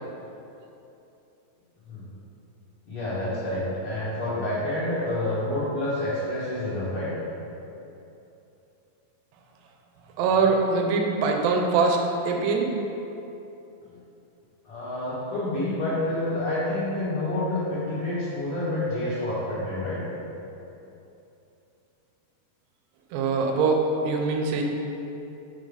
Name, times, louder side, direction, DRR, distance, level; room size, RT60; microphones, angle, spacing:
voice 1, 2.9-7.1 14.6-20.0, left 1 dB, 55° left, -14 dB, 1.8 m, -28 dB
voice 2, 10.2-12.0 12.3-12.7 23.1-24.6, right 4 dB, 80° right, 2 dB, 2.6 m, -23 dB
7.6 x 3.5 x 4.9 m, 2.9 s
omnidirectional pair, 4.9 m